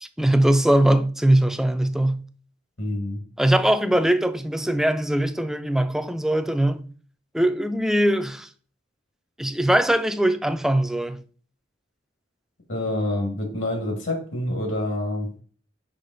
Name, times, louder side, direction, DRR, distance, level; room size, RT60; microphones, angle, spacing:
voice 1, 0.0-2.2 3.4-6.9 7.3-8.5 9.4-11.2, right 1 dB, ahead, 0.3 m, -21 dB
voice 2, 2.8-3.2 12.7-15.3, left 1 dB, 70° left, 1.7 m, -27 dB
5.2 x 5.0 x 3.9 m
head